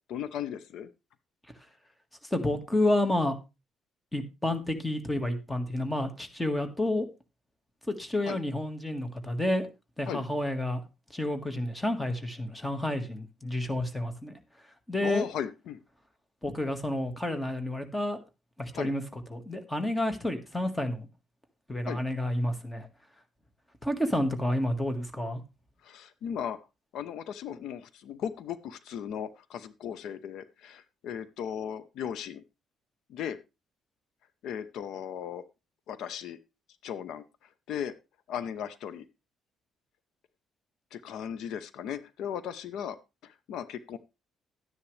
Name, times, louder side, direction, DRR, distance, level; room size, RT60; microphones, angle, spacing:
voice 1, 0.1-0.9 8.2-8.4 10.1-10.3 15.0-15.8 18.7-18.9 21.8-22.0 25.8-26.6 26.9-32.4 33.1-33.4 34.4-35.4 35.9-36.4 36.8-37.2 37.7-37.9 38.3-39.1 40.9-43.0 43.2-44.0, left 8 dB, 70° left, 14 dB, 0.8 m, -36 dB
voice 2, 2.3-3.3 4.1-7.1 8.0-9.7 10.0-10.8 11.1-14.3 14.9-15.2 16.4-18.2 18.6-19.0 19.3-21.1 21.7-22.9 23.8-25.4, left 1 dB, 10° left, 7 dB, 1.7 m, -30 dB
12.5 x 9.9 x 3.3 m, 0.27 s
cardioid pair, 135°, 0 cm